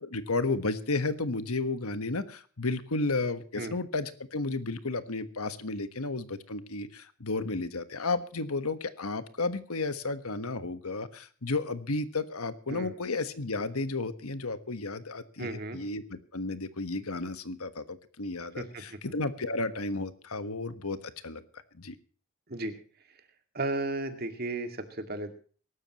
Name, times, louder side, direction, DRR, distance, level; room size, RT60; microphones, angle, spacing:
voice 1, 0.0-21.4 21.7-22.0, left 3 dB, 90° left, 11 dB, 1.4 m, -33 dB
voice 2, 15.4-15.8 18.6-19.0 22.5-22.7 23.5-25.3, right 2 dB, 45° right, 7 dB, 2.2 m, -34 dB
23.0 x 13.0 x 3.1 m, 0.42 s
head